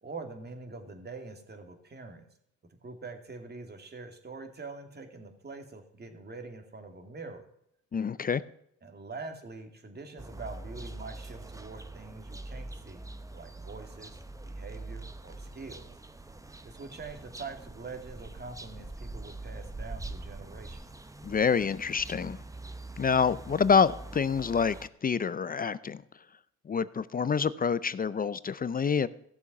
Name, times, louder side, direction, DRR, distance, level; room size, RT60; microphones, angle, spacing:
voice 1, 0.0-2.2 2.8-7.4 8.8-13.1 13.3-14.1 14.4-15.8 16.6-20.8, right 3 dB, 35° right, 5 dB, 2.5 m, -44 dB
voice 2, 7.9-8.4 21.2-22.4 23.0-24.8 25.0-26.0 26.7-29.1, left 6 dB, 30° left, 16 dB, 0.5 m, -27 dB
sound 1, 10.2-24.9, right 2 dB, 10° right, 0.9 m, -44 dB
15.5 x 7.0 x 6.0 m, 0.72 s
cardioid pair, 90°, 30 cm